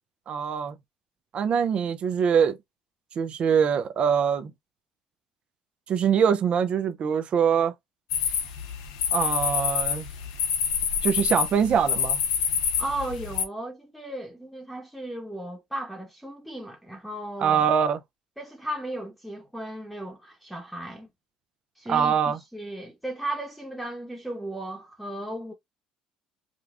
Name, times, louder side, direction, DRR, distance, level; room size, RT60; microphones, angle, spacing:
voice 1, 0.3-0.8 1.3-2.6 3.2-4.5 5.9-7.7 9.1-10.1 11.0-12.2 17.4-18.0 21.9-22.4, right 7 dB, 50° right, 0.5 m, -23 dB
sound 1, 8.1-13.4, left 8 dB, 90° left, 0.8 m, -27 dB
voice 2, 12.8-17.7 18.4-21.1 21.8-25.5, right 1 dB, ahead, 0.9 m, -35 dB
5.0 x 2.3 x 2.4 m
supercardioid pair, 85°, 2 cm